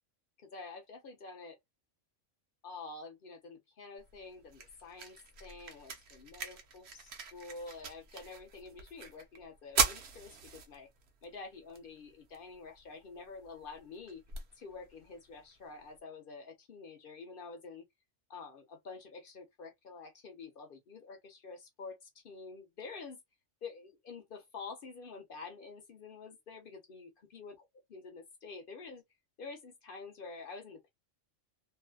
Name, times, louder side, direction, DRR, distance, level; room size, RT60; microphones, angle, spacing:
voice 1, 0.4-1.6 2.6-10.9 11.2-14.2 14.6-17.9 18.3-23.2 23.6-27.5 27.9-29.0 29.4-30.9, left 4 dB, 50° left, 0.8 m, -48 dB
sound 1, 4.0-16.0, right 6 dB, 60° right, 0.9 m, -41 dB
2.6 x 2.1 x 2.2 m
omnidirectional pair, 1.3 m